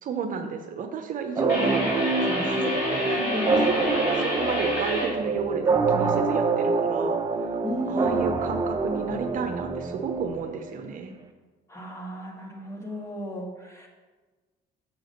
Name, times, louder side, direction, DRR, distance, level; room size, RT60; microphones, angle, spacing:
voice 1, 0.0-3.1 3.5-7.5 7.9-11.1, right 6 dB, 55° right, 5 dB, 0.9 m, -32 dB
sound 1, 1.4-10.8, right 4 dB, 20° right, 1.0 m, -26 dB
sound 2, 1.5-5.1, left 1 dB, 60° left, 2.9 m, -28 dB
voice 2, 3.1-4.0 4.9-5.1 7.6-8.3 11.7-13.9, equal, 15° left, 0 dB, 1.7 m, -34 dB
7.1 x 4.9 x 6.6 m, 1.3 s
cardioid pair, 110°, 17 cm